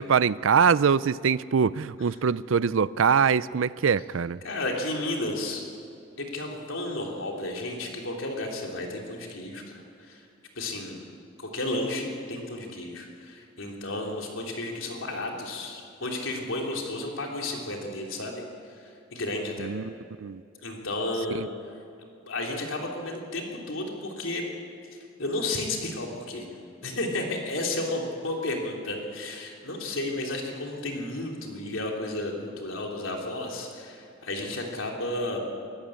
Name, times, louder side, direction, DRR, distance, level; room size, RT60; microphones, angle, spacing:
voice 1, 0.0-4.4 19.6-19.9 20.2-20.4 21.3-21.5, right 6 dB, 75° right, 19 dB, 0.5 m, -23 dB
voice 2, 4.4-5.6 6.2-10.2 10.5-11.0 11.4-18.4 18.8-19.7 20.6-21.5 22.3-24.5 24.9-26.4 26.8-35.4, left 2 dB, 85° left, 0 dB, 3.3 m, -32 dB
23.0 x 14.5 x 8.7 m, 2.4 s
head